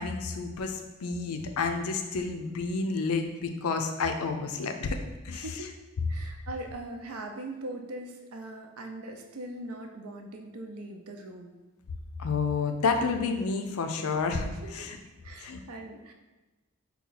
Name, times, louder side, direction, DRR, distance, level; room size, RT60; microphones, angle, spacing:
voice 1, 0.0-5.0 5.2-5.4 12.2-15.0 15.4-15.6, left 4 dB, 85° left, 6 dB, 0.4 m, -30 dB
voice 2, 5.3-5.7 6.1-11.5 14.6-15.0 15.2-16.1, right 1 dB, 85° right, 4 dB, 0.6 m, -41 dB
4.1 x 2.3 x 3.9 m, 1.1 s
head